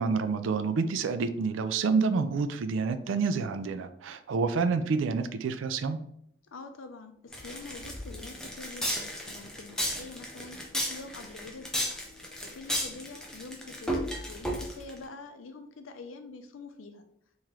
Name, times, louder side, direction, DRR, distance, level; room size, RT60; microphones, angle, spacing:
voice 1, 0.0-6.0, right 4 dB, 80° right, 10 dB, 0.4 m, -28 dB
voice 2, 6.5-12.0 12.4-17.0, left 3 dB, 90° left, 7 dB, 0.5 m, -45 dB
sound 1, 7.3-15.0, equal, 5° left, 0.5 m, -34 dB
3.1 x 3.0 x 3.6 m, 0.72 s
head